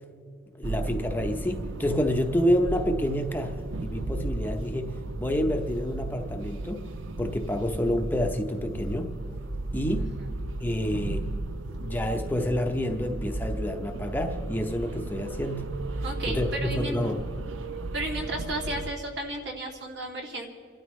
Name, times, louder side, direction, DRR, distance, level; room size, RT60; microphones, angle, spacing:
voice 1, 0.6-6.9 7.2-9.1 9.7-10.1 10.6-11.3 11.8-15.7 16.3-17.2, equal, 10° left, 4 dB, 0.7 m, -28 dB
sound 1, 0.6-18.9, right 2 dB, 85° right, 0.6 m, -35 dB
voice 2, 10.0-10.3 16.0-17.0 17.9-20.5, right 1 dB, 65° right, 0 dB, 2.5 m, -34 dB
29.5 x 12.5 x 3.2 m, 2.2 s
head